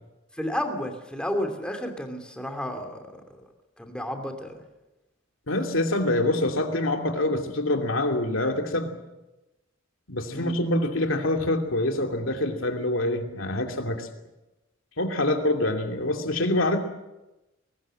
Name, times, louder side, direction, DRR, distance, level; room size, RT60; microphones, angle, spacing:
voice 1, 0.4-3.0 3.8-4.6 10.3-10.5, left 1 dB, 5° left, 4 dB, 2.7 m, -31 dB
voice 2, 5.5-8.9 10.1-14.1 15.0-16.8, left 1 dB, 90° left, 4 dB, 2.8 m, -25 dB
22.0 x 19.0 x 7.6 m, 1.0 s
head